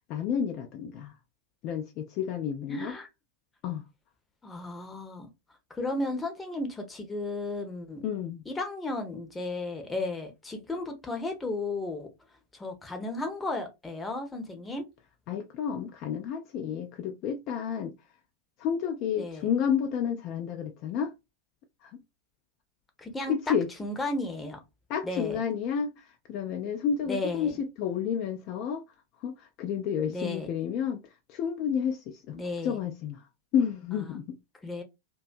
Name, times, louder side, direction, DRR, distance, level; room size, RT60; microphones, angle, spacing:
voice 1, 0.1-1.1 1.6-3.0 3.6-3.8 8.0-8.4 15.3-17.9 18.6-21.1 21.8-22.0 23.3-23.7 24.9-28.8 29.2-31.0 31.3-32.4 32.6-33.2 33.5-34.4, left 7 dB, 40° left, 0.3 m, -30 dB
voice 2, 2.7-3.1 4.4-5.3 5.7-8.0 8.5-12.1 12.5-14.9 19.2-19.5 23.0-23.4 23.8-24.6 25.0-25.4 27.1-27.6 30.1-30.5 32.3-32.8 34.1-34.2 34.6-34.8, left 2 dB, 10° left, 0.7 m, -34 dB
2.5 x 2.2 x 2.4 m
figure-of-eight pair, 90°, 0 cm